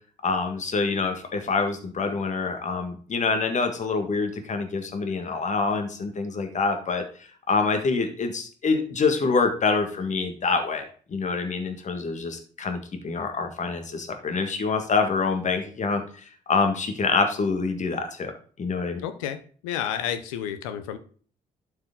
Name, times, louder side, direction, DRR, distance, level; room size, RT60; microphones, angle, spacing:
voice 1, 0.2-7.0 7.5-18.3 18.6-19.0, left 4 dB, 45° left, 5 dB, 1.7 m, -26 dB
voice 2, 19.0-21.0, left 9 dB, 85° left, 11 dB, 0.8 m, -31 dB
11.5 x 4.8 x 3.8 m, 0.43 s
hypercardioid pair, 45°, 17 cm